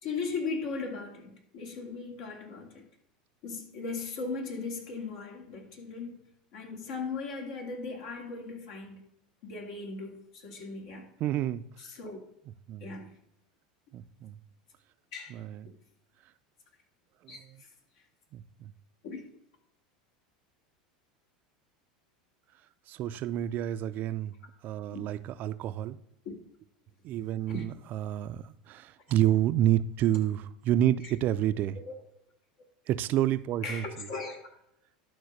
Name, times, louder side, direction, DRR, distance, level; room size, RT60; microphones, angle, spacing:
voice 1, 0.0-2.8 3.4-6.2 6.5-9.0 9.4-11.1 11.8-12.2 12.8-13.1 15.1-15.4 17.3-17.4 19.0-19.2 24.9-25.0 26.2-26.3 27.5-27.6 31.0-31.1 31.8-31.9 33.6-34.4, left 4 dB, 70° left, 2.6 m, -38 dB
voice 2, 11.2-11.6 12.7-13.0 13.9-14.4 15.3-15.7 17.2-17.6 18.3-18.7 22.9-24.3 24.6-26.0 27.0-31.8 32.9-34.1, right 12 dB, 50° right, 0.5 m, -29 dB
11.5 x 3.9 x 6.5 m
hypercardioid pair, 95°, 4 cm